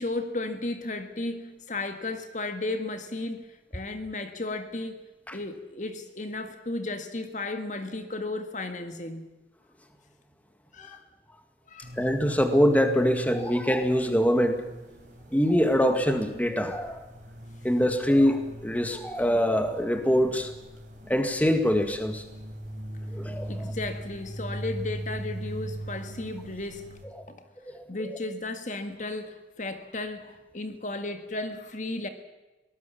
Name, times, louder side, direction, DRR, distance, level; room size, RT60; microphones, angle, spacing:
voice 1, 0.0-5.0 5.3-9.3 10.7-11.0 11.7-12.0 23.5-26.8 27.3-27.4 27.9-32.1, left 2 dB, 45° left, 8 dB, 1.7 m, -34 dB
sound 1, 11.8-27.1, right 1 dB, 45° right, 4.5 m, -40 dB
voice 2, 12.0-14.6 15.3-17.0 17.6-20.5 21.1-22.2 23.1-23.6 27.7-27.8, equal, 10° left, 6 dB, 2.0 m, -24 dB
23.5 x 19.5 x 7.1 m, 1.1 s
head